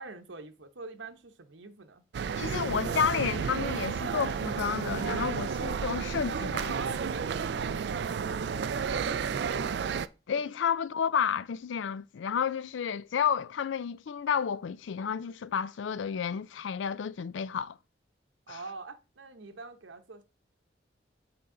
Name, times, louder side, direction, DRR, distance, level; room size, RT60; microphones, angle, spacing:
voice 1, 0.0-2.0 6.7-8.0 8.5-9.8 18.5-20.2, right 3 dB, 80° right, 0.8 m, -43 dB
sound 1, 2.1-10.1, right 6 dB, 60° right, 0.3 m, -32 dB
voice 2, 2.4-6.7 10.3-17.8 18.5-18.6, left 7 dB, 80° left, 0.4 m, -31 dB
7.6 x 4.3 x 3.8 m
head